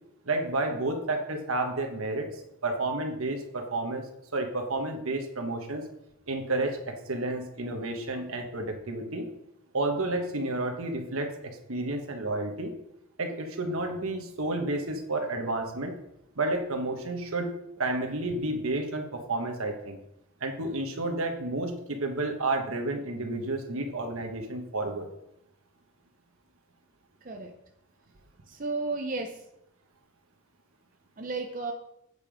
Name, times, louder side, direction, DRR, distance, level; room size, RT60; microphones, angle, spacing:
voice 1, 0.2-2.2 2.6-4.0 4.3-5.8 6.3-9.3 9.7-12.7 13.2-15.9 16.4-17.5 17.8-20.0 20.4-25.1, right 2 dB, 80° right, 4 dB, 1.3 m, -31 dB
voice 2, 28.5-29.4 31.2-31.7, right 3 dB, 40° right, 3 dB, 0.7 m, -33 dB
8.2 x 5.3 x 5.1 m, 0.81 s
head